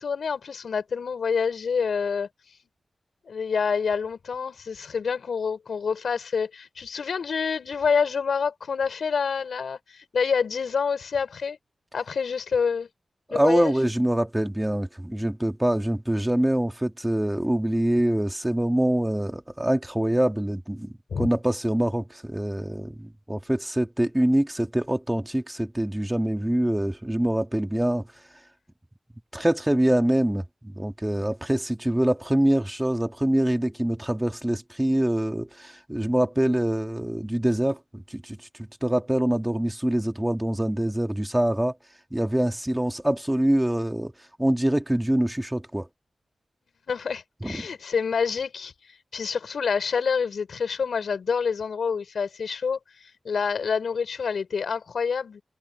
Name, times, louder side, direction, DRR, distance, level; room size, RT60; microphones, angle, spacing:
voice 1, 0.0-2.3 3.3-11.6 11.9-12.9 13.3-13.7 21.1-21.3 46.9-48.7 49.1-55.4, left 6 dB, 80° left, 5.4 m, -27 dB
voice 2, 13.3-28.1 29.3-41.8 42.1-44.1 44.4-45.9 47.4-47.7, right 1 dB, 10° right, 2.1 m, -25 dB
wide cardioid pair, 90°, 0 cm